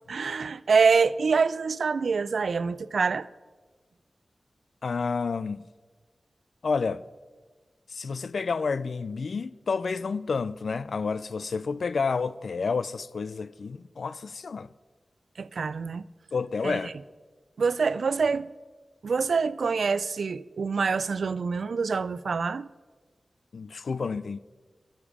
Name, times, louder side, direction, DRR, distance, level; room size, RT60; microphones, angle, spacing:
voice 1, 0.1-3.3 15.4-16.0 16.6-16.9 17.6-18.5 19.0-22.7, right 5 dB, 85° right, 0.3 m, -25 dB
voice 2, 4.8-5.7 6.6-7.0 7.9-14.7 16.3-17.0 23.5-24.4, left 4 dB, 80° left, 0.3 m, -30 dB
14.0 x 6.9 x 4.9 m
wide cardioid pair, 100°, 0 cm